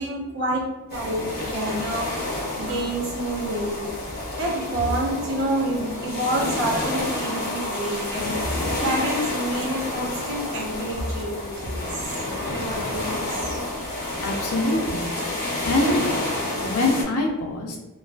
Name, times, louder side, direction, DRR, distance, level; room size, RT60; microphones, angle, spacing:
voice 1, 0.0-2.1 2.6-3.9 4.4-12.0 12.4-13.6, right 1 dB, 55° right, -3 dB, 0.7 m, -28 dB
sound 1, 0.9-17.0, left 1 dB, 45° left, 0.6 m, -29 dB
voice 2, 14.2-15.1 15.6-16.0 16.6-17.8, left 2 dB, 90° left, 1 dB, 0.5 m, -24 dB
2.4 x 2.3 x 2.2 m, 1.1 s
head